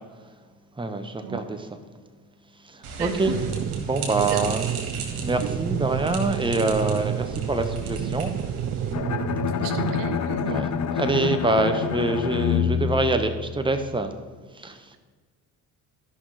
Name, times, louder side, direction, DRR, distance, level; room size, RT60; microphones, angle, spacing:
voice 1, 0.8-1.7 3.0-3.3 3.8-4.6 5.1-8.3 10.4-14.1 14.6-14.8, right 2 dB, 10° right, 7 dB, 1.0 m, -25 dB
sound 1, 2.8-8.9, right 3 dB, 85° right, 1.5 m, -36 dB
voice 2, 3.0-3.4 4.2-4.6 5.4-5.5 9.6-10.7, right 9 dB, 70° right, 9 dB, 0.8 m, -33 dB
sound 2, 3.3-10.2, right 10 dB, 35° right, 0.5 m, -30 dB
Bowed string instrument, 8.9-13.9, left 8 dB, 40° left, 0.7 m, -27 dB
11.5 x 5.6 x 4.9 m, 1.4 s
hypercardioid pair, 55°, 44 cm